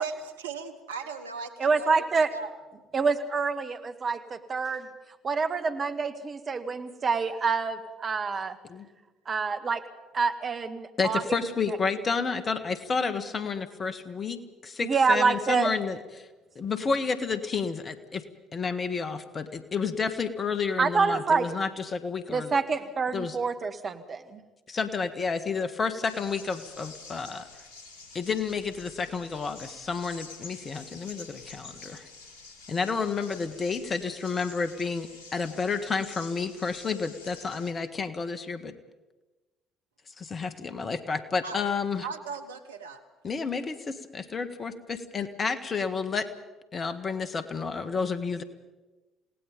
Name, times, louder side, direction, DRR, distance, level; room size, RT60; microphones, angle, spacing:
voice 1, 0.0-2.5 41.4-41.6 42.0-43.0, right 5 dB, 80° right, 8 dB, 1.2 m, -37 dB
voice 2, 1.6-2.3 2.9-4.9 5.2-8.6 9.2-9.8 10.1-11.2 11.7-11.8 14.8-15.7 20.8-21.5 22.3-24.4, right 4 dB, 40° right, 8 dB, 1.7 m, -27 dB
voice 3, 11.0-16.3 16.6-18.2 18.5-22.5 23.1-23.4 24.7-27.5 28.1-32.1 32.7-38.7 40.2-42.1 43.2-46.3 46.7-48.4, left 5 dB, 35° left, 10 dB, 1.7 m, -30 dB
sound 1, 26.0-37.7, left 3 dB, 75° left, 2.1 m, -48 dB
28.5 x 18.0 x 5.4 m, 1.2 s
figure-of-eight pair, 50°, 0 cm